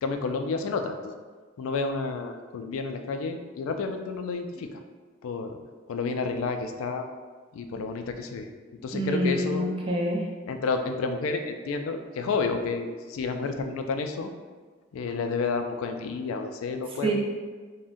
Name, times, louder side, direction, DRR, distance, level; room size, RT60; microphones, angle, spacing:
voice 1, 0.0-1.1 1.6-4.7 5.2-5.6 5.9-7.1 7.5-8.5 8.8-9.7 10.5-14.3 14.9-17.1, left 4 dB, 75° left, 7 dB, 0.3 m, -30 dB
voice 2, 8.9-10.2 17.0-17.1, right 1 dB, 25° right, -2 dB, 0.5 m, -26 dB
3.5 x 2.1 x 2.5 m, 1.4 s
head